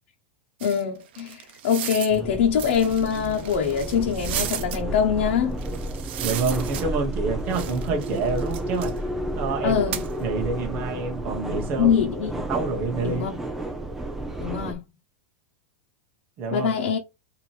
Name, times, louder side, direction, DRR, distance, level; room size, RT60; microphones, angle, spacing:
voice 1, 0.6-5.6 9.6-10.0 11.8-12.3 13.0-13.4 14.4-14.8 16.5-17.0, left 7 dB, 70° left, 1.1 m, -24 dB
sound 1, 0.6-2.2 2.5-4.8 5.6-7.2 7.5-9.0 9.9-10.1, right 10 dB, 60° right, 0.9 m, -34 dB
sound 2, 2.1-14.7, right 1 dB, 5° right, 0.7 m, -32 dB
voice 2, 6.2-9.0 9.3-9.8 10.2-12.0 12.5-13.3 16.4-16.7, right 4 dB, 35° right, 1.2 m, -27 dB
5.1 x 2.9 x 3.3 m
supercardioid pair, 165°, 7 cm